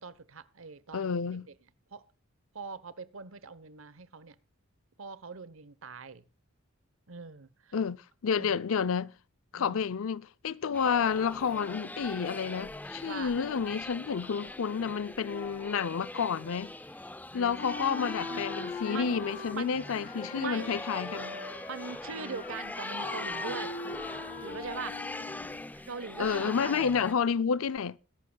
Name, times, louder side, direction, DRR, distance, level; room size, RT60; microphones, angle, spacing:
voice 1, 0.0-1.2 1.9-2.0 2.5-4.3 5.0-6.2 7.1-7.8 8.3-8.6 9.5-9.8 12.9-13.3 17.7-18.5 18.9-19.8 20.3-20.8 21.7-23.8 24.4-25.0 25.5-26.9, right 5 dB, 70° right, 1.0 m, -42 dB
voice 2, 0.9-1.5 7.7-8.0 8.2-9.1 9.5-16.7 17.3-21.4 26.2-28.0, left 6 dB, 70° left, 0.5 m, -30 dB
sound 1, 10.7-27.1, left 2 dB, 10° left, 0.5 m, -41 dB
Wind instrument woodwind instrument, 17.5-25.7, left 3 dB, 50° left, 5.2 m, -42 dB
22.0 x 11.5 x 2.3 m
head